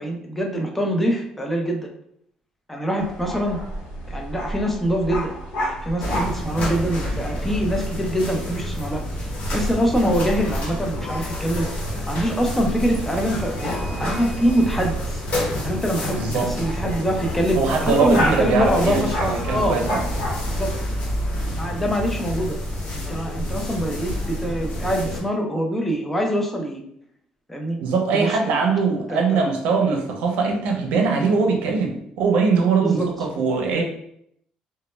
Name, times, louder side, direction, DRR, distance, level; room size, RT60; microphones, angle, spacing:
voice 1, 0.0-1.9 2.7-3.6 4.1-9.0 9.5-11.7 12.1-15.2 15.6-19.8 20.5-20.7 21.6-22.6 22.9-26.8 27.5-27.8 28.1-28.4 29.1-29.5 32.8-33.1, equal, 10° left, 1 dB, 0.4 m, -24 dB
sound 1, 3.0-20.7, equal, 90° left, 0.8 m, -33 dB
sound 2, 6.0-25.2, equal, 60° left, 1.0 m, -28 dB
voice 2, 16.2-16.5 17.6-20.0 27.8-33.8, right 4 dB, 80° right, 2 dB, 0.5 m, -21 dB
2.1 x 2.0 x 3.0 m, 0.71 s
cardioid pair, 135°, 2 cm